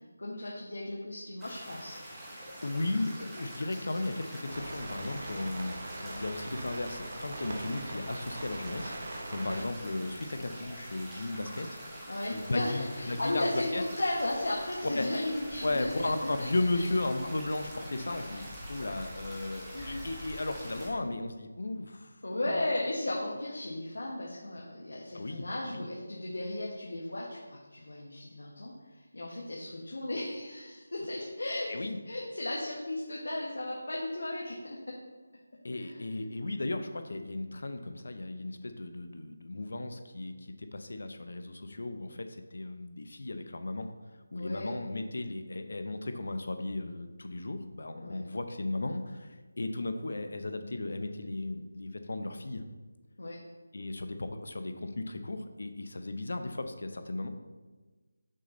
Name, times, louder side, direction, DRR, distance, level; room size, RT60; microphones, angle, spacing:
voice 1, 0.2-2.0 9.4-9.6 12.1-15.8 16.4-16.5 16.7-16.9 18.8-18.9 19.7-20.1 22.2-28.7 29.1-35.0 35.8-36.0 44.3-44.7 48.0-48.2 53.2-53.4, left 1 dB, 85° left, -3 dB, 1.4 m, -35 dB
sound 1, 1.4-20.9, equal, 5° right, 0.8 m, -45 dB
voice 2, 2.6-8.9 9.3-11.8 12.3-13.8 14.9-15.1 15.6-22.6 25.1-25.9 31.7-32.0 35.6-43.9 44.3-52.6 53.7-57.3, left 2 dB, 60° left, 7 dB, 0.7 m, -35 dB
sound 2, 4.5-9.6, right 2 dB, 35° right, 0.8 m, -42 dB
6.4 x 5.8 x 3.9 m, 1.3 s
figure-of-eight pair, 175°, 0 cm